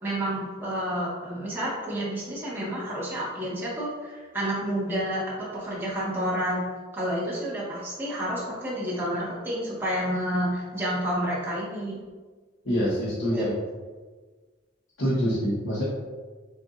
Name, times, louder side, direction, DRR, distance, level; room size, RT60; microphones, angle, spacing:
voice 1, 0.0-6.6 6.9-12.0 13.3-13.4, equal, 10° right, -9 dB, 1.4 m, -29 dB
voice 2, 12.6-13.5 15.0-15.8, equal, 90° left, -9 dB, 1.3 m, -25 dB
7.8 x 2.6 x 2.5 m, 1.4 s
head